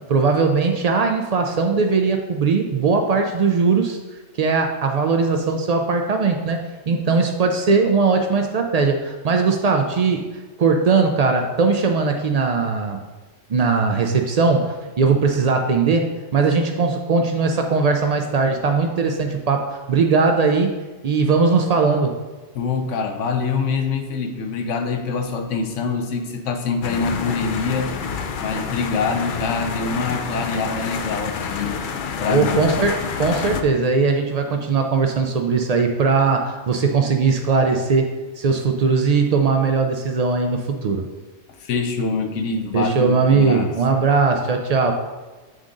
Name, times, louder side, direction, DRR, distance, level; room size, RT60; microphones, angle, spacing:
voice 1, 0.1-4.0 4.4-10.3 10.6-13.0 13.5-20.7 21.0-22.1 32.3-41.0 42.7-44.9, right 4 dB, 75° right, 4 dB, 0.3 m, -19 dB
voice 2, 22.5-27.9 28.4-31.8 32.2-32.6 41.6-43.7, left 4 dB, 80° left, 6 dB, 1.0 m, -25 dB
sound 1, 26.8-33.6, left 6 dB, 60° left, 0.5 m, -28 dB
7.7 x 3.7 x 3.8 m, 1.3 s
omnidirectional pair, 1.3 m